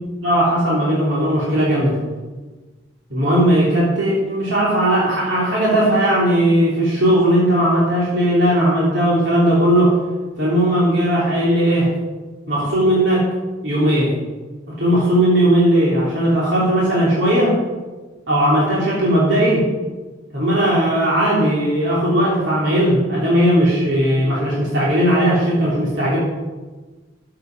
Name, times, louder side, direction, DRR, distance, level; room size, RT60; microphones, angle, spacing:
voice 1, 0.0-2.0 3.1-9.9 10.4-11.9 12.5-13.3 13.6-14.2 14.8-17.6 18.3-19.7 20.3-26.2, right 1 dB, 65° right, -7 dB, 3.4 m, -17 dB
14.5 x 6.8 x 6.2 m, 1.3 s
head